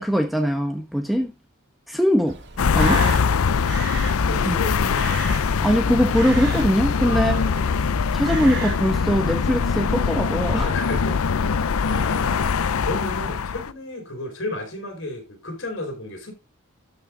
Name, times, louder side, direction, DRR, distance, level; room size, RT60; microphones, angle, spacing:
voice 1, 0.0-1.3 1.9-2.4 2.7-3.0 4.4-4.6 5.5-7.3 8.1-10.7, equal, ahead, 1.0 m, -21 dB
Crow, 2.3-9.1, right 4 dB, 55° right, 2.3 m, -36 dB
sound 1, 2.6-13.7, left 5 dB, 80° left, 0.5 m, -22 dB
voice 2, 2.7-3.3 4.2-5.0 7.0-7.9 10.5-11.6 11.9-12.5 12.8-16.3, left 2 dB, 60° left, 5.0 m, -32 dB
12.5 x 5.7 x 3.8 m
head